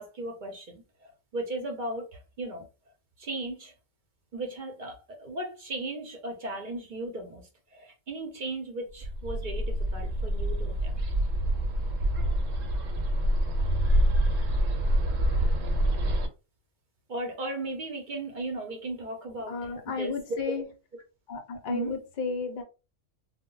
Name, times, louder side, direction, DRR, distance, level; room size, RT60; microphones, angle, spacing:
voice 1, 0.0-2.7 3.2-3.7 4.3-11.0 17.1-19.5 20.0-20.1 21.7-21.9, right 2 dB, 50° right, 0.7 m, -36 dB
Bird, 9.0-16.3, equal, 80° right, 1.0 m, -26 dB
voice 2, 19.5-20.7 21.3-22.6, left 4 dB, 55° left, 0.6 m, -33 dB
2.1 x 2.1 x 3.7 m
omnidirectional pair, 1.3 m